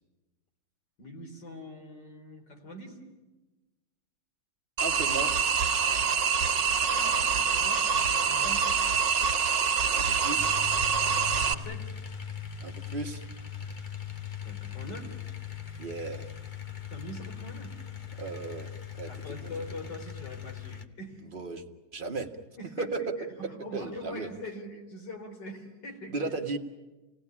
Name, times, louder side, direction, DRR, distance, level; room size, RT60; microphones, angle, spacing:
voice 1, 1.0-3.0 6.9-8.8 11.3-11.9 14.4-15.2 16.9-17.8 18.1-18.3 19.1-21.2 22.6-26.3, left 1 dB, 75° left, 3 dB, 4.1 m, -43 dB
voice 2, 4.8-5.3 9.9-10.5 12.6-13.2 15.8-16.3 18.2-19.5 21.3-21.6 21.9-22.3 22.6-23.1 23.7-24.3 26.1-26.6, right 3 dB, 30° right, 3 dB, 1.6 m, -35 dB
sound 1, 4.8-11.5, right 6 dB, 85° right, 2.0 m, -26 dB
sound 2, 10.4-20.9, left 8 dB, 35° left, 1.0 m, -40 dB
27.5 x 18.5 x 10.0 m, 1.1 s
omnidirectional pair, 1.9 m